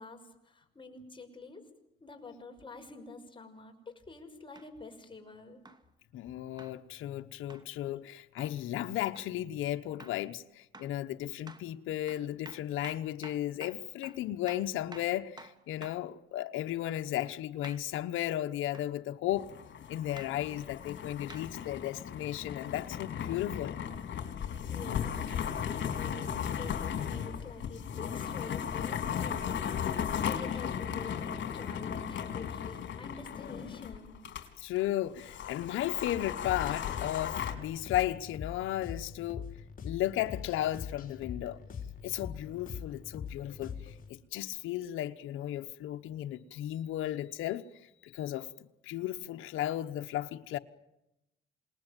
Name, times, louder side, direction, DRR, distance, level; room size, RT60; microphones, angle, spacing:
voice 1, 0.0-1.6 2.0-5.6 24.7-34.2, left 3 dB, 25° left, 6.0 m, -47 dB
sound 1, 4.6-4.7 5.7-5.9 6.6-6.8 7.5-7.7 8.4-8.6 9.2-9.3 10.0-10.2 10.7-11.0 11.5-11.7 12.1-16.1 17.6-17.9 18.7-18.9 20.2-20.4 21.3-21.5 22.4-22.5, right 2 dB, 20° right, 2.4 m, -51 dB
voice 2, 6.1-19.5 19.9-23.8 34.6-39.4 39.8-41.6 42.0-47.6 48.0-48.5 48.8-50.6, left 13 dB, 85° left, 1.1 m, -35 dB
sound 2, 19.3-34.5 34.8-34.9 35.2-37.5, left 8 dB, 65° left, 4.0 m, -36 dB
sound 3, 36.4-44.1, left 7 dB, 45° left, 5.6 m, -43 dB
27.5 x 20.0 x 9.2 m
cardioid pair, 90°, 20 cm